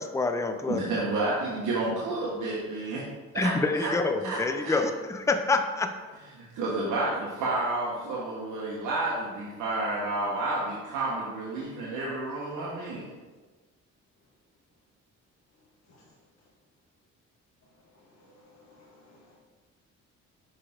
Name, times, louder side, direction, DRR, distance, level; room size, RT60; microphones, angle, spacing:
voice 1, 0.0-1.0 3.4-5.9, left 3 dB, 10° left, 7 dB, 0.5 m, -27 dB
voice 2, 0.7-3.0 3.3-3.9 4.2-4.8 6.3-13.1, right 2 dB, 80° right, -6 dB, 1.4 m, -30 dB
voice 3, 18.2-19.4, left 2 dB, 60° left, -5 dB, 2.1 m, -57 dB
6.6 x 5.1 x 3.7 m, 1.3 s
cardioid pair, 90°, 30 cm